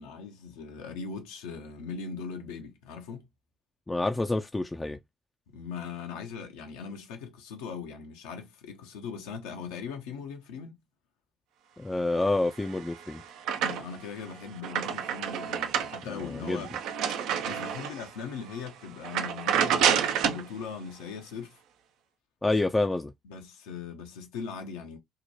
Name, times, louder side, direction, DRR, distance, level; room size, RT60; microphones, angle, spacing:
voice 1, 0.0-3.3 5.5-10.8 13.6-16.7 17.1-17.2 17.4-21.6 23.2-25.0, left 6 dB, 70° left, 0.5 m, -40 dB
voice 2, 3.9-5.0 11.8-13.2 16.2-16.6 22.4-23.1, left 2 dB, 15° left, 0.3 m, -28 dB
sound 1, 12.5-14.1 14.5-18.1 18.5-18.7 19.0-20.5, right 8 dB, 65° right, 0.4 m, -29 dB
2.7 x 2.1 x 2.9 m
figure-of-eight pair, 50°, 0 cm